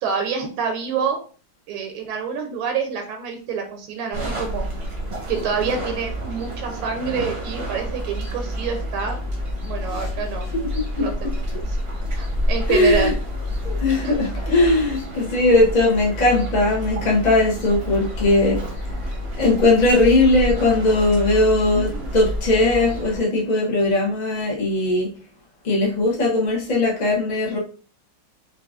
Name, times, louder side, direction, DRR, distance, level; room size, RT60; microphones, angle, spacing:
voice 1, 0.0-1.2 1.7-4.6 5.3-9.2 9.6-10.5 11.0-13.1 14.0-14.1 21.7-22.1, right 6 dB, 80° right, 4 dB, 1.4 m, -27 dB
sound 1, 4.1-23.2, equal, 50° right, 0.7 m, -28 dB
voice 2, 10.5-11.1 12.7-13.1 13.6-18.6 19.4-25.1 25.6-27.6, left 2 dB, 80° left, -4 dB, 0.3 m, -19 dB
4.7 x 2.5 x 2.4 m, 0.40 s
omnidirectional pair, 2.3 m